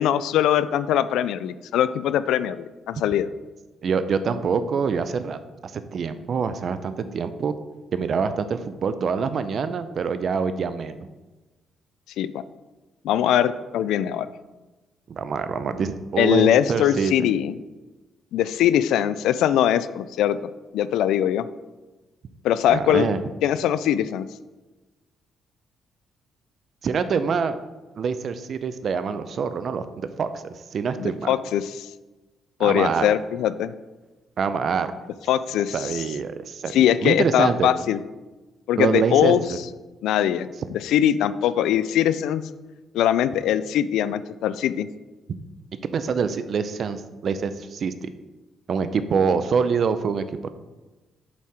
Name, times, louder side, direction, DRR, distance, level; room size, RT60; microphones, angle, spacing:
voice 1, 0.0-3.3 12.2-12.4 13.0-14.3 16.2-17.6 18.3-20.4 20.7-21.4 22.4-23.1 23.4-24.3 31.0-31.9 32.6-33.7 35.3-36.0 36.7-38.0 38.7-39.4 40.0-42.4 42.9-44.9, left 10 dB, 85° left, 14 dB, 0.3 m, -21 dB
voice 2, 3.8-7.5 7.9-11.1 15.1-17.1 22.7-23.2 26.8-27.6 28.0-31.3 32.6-33.1 34.4-34.9 35.7-37.7 38.8-39.6 45.9-48.1 48.7-50.5, right 6 dB, 55° right, 11 dB, 0.5 m, -25 dB
7.2 x 4.4 x 4.8 m, 1.2 s
cardioid pair, 90°, 0 cm